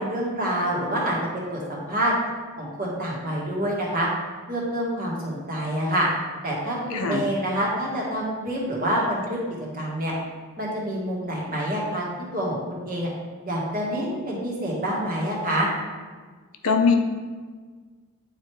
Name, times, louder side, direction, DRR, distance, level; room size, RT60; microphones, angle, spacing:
voice 1, 0.0-2.1 2.6-4.1 4.5-6.1 6.4-9.4 9.7-10.1 10.6-12.0 12.3-13.1 13.5-15.7, equal, 40° right, -4 dB, 1.7 m, -27 dB
voice 2, 16.6-16.9, left 5 dB, 75° left, 5 dB, 0.7 m, -20 dB
9.0 x 3.2 x 4.7 m, 1.5 s
head